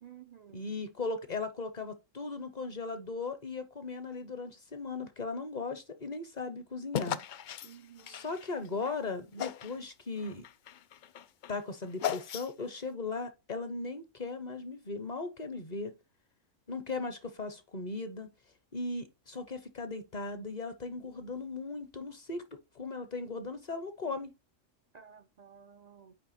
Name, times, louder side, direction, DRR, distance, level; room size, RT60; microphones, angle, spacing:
voice 1, 0.0-0.7 7.6-8.3 24.9-26.1, right 8 dB, 55° right, 0.4 m, -54 dB
voice 2, 0.5-7.2 8.1-10.4 11.5-15.9 16.7-18.3 18.7-24.3, left 3 dB, 40° left, 0.8 m, -38 dB
sound 1, 6.9-8.9 9.4-9.8 10.2-12.8, left 10 dB, 70° left, 0.4 m, -37 dB
9.1 x 3.4 x 4.2 m
omnidirectional pair, 1.3 m